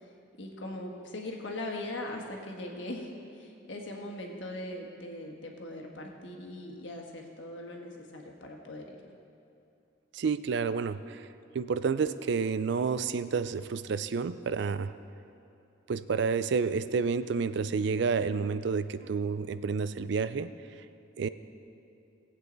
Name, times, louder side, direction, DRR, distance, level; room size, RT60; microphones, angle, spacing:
voice 1, 0.4-9.0, left 1 dB, 75° left, 1 dB, 1.5 m, -40 dB
voice 2, 10.1-11.3 11.5-14.9 15.9-20.5 21.2-21.3, right 5 dB, 65° right, 14 dB, 0.4 m, -30 dB
18.0 x 8.3 x 4.0 m, 2.7 s
head